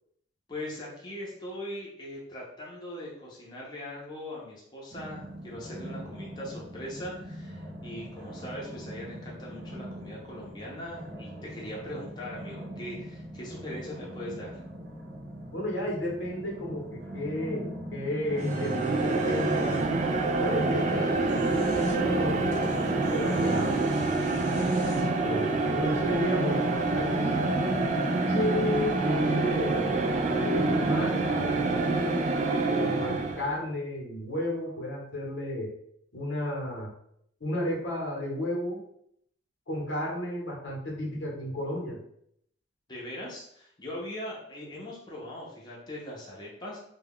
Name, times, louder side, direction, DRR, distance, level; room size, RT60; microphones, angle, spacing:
voice 1, 0.5-14.6 42.9-46.8, left 1 dB, 25° left, -5 dB, 0.7 m, -40 dB
sound 1, 4.9-19.2, equal, 60° right, 0.8 m, -42 dB
voice 2, 15.5-19.8 20.2-23.8 24.8-26.6 26.9-27.4 27.9-29.9 30.3-32.3 32.7-35.7 36.1-36.9 37.4-38.8 39.7-42.0, left 1 dB, 90° left, -3 dB, 1.0 m, -33 dB
sound 2, 18.3-33.6, right 3 dB, 40° right, 0.3 m, -26 dB
sound 3, 18.4-19.9 21.1-22.0 22.5-25.2, equal, 70° left, 0.7 m, -45 dB
2.3 x 2.2 x 3.5 m, 0.71 s
head